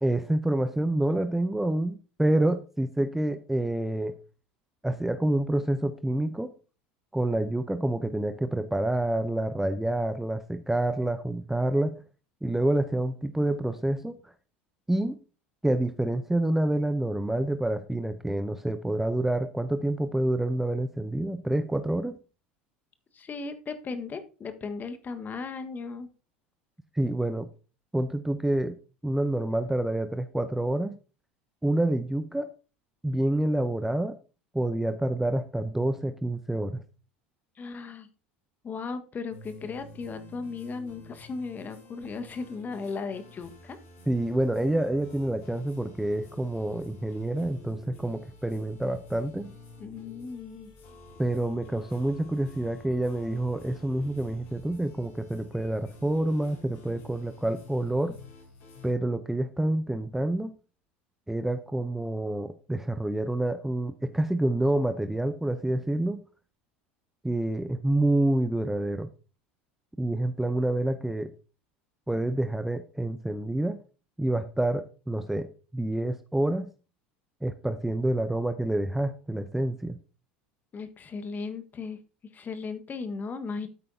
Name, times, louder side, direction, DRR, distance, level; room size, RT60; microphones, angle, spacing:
voice 1, 0.0-4.2 4.8-6.5 7.1-11.9 12.4-14.3 14.9-15.2 15.6-22.2 26.9-27.5 27.9-28.8 29.0-31.0 31.6-32.5 33.0-34.2 34.5-36.8 44.1-49.5 51.2-58.2 58.8-60.5 61.3-66.2 67.2-69.1 70.0-71.3 72.1-73.8 74.2-76.7 77.4-80.0, right 1 dB, 5° right, 0.7 m, -27 dB
voice 2, 23.1-26.1 37.6-38.1 38.6-43.8 49.8-50.7 80.7-82.0 82.3-83.7, left 4 dB, 30° left, 1.5 m, -36 dB
sound 1, 39.3-58.9, left 1 dB, 60° left, 5.9 m, -50 dB
12.5 x 8.5 x 2.8 m
figure-of-eight pair, 75°, 6 cm